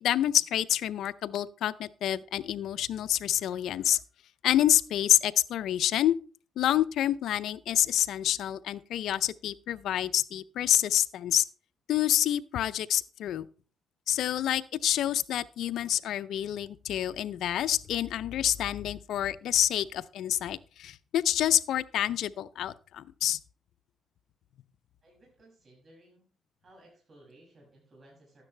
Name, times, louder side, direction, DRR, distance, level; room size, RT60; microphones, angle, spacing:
voice 1, 0.0-4.0 4.4-6.2 6.6-11.4 11.9-13.5 14.1-23.4, left 11 dB, 75° left, 0.5 m, -27 dB
voice 2, 25.0-26.3 26.6-28.4, right 1 dB, 40° right, 6.3 m, -58 dB
12.0 x 9.8 x 3.2 m
cardioid pair, 90°, 0 cm